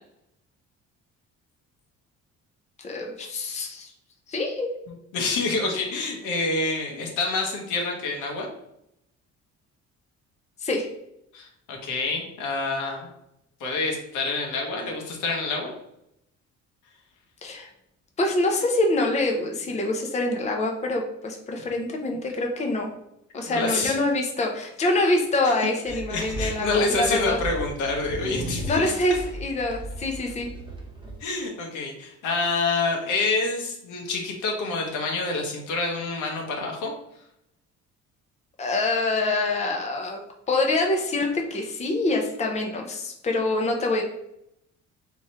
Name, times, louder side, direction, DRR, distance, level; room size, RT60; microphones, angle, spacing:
voice 1, 2.8-3.9 4.3-4.7 10.6-10.9 17.4-17.7 18.2-22.9 23.3-27.4 28.6-30.5 38.6-40.2 40.5-44.0, left 2 dB, 25° left, 1 dB, 0.7 m, -25 dB
voice 2, 4.9-8.5 11.3-13.1 13.6-15.7 23.5-24.0 25.4-25.5 26.1-28.9 31.2-36.9, left 3 dB, 85° left, 1 dB, 1.2 m, -27 dB
sound 1, 25.8-31.2, right 1 dB, 15° right, 0.9 m, -35 dB
3.6 x 3.1 x 4.3 m, 0.79 s
cardioid pair, 135°, 29 cm